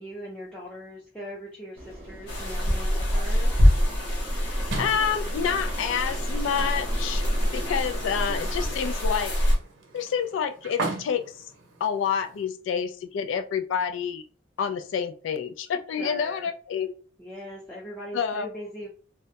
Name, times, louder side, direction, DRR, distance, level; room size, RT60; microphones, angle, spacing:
voice 1, 0.0-3.5 16.0-16.5 17.2-18.9, equal, 5° left, -6 dB, 0.4 m, -40 dB
sound 1, 1.7-8.7, right 1 dB, 10° right, 0.8 m, -41 dB
sound 2, 2.3-9.6, equal, 55° left, 0.7 m, -25 dB
voice 2, 4.4-7.2 7.5-9.4 9.9-11.2 11.8-14.2 14.6-16.9 18.1-18.5, left 7 dB, 80° left, 9 dB, 0.3 m, -28 dB
sound 3, 4.7-12.4, right 3 dB, 80° right, 0.6 m, -39 dB
2.2 x 2.1 x 2.7 m, 0.39 s
head